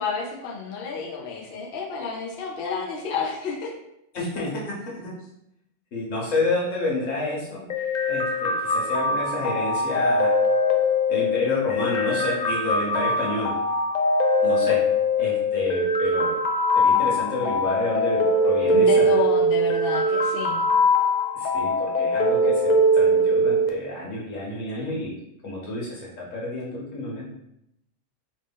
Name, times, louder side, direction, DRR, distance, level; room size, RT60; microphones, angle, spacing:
voice 1, 0.0-3.7 18.6-20.6, left 5 dB, 55° left, -2 dB, 0.8 m, -30 dB
voice 2, 4.1-5.1 5.9-7.6 8.1-10.3 11.1-13.5 14.4-14.8 15.2-16.3 16.7-19.1 21.3-25.1 25.4-27.3, left 2 dB, 90° left, -5 dB, 1.6 m, -29 dB
sound 1, 7.7-23.7, left 1 dB, 70° left, 0.4 m, -22 dB
3.2 x 2.6 x 3.5 m, 0.80 s
omnidirectional pair, 1.3 m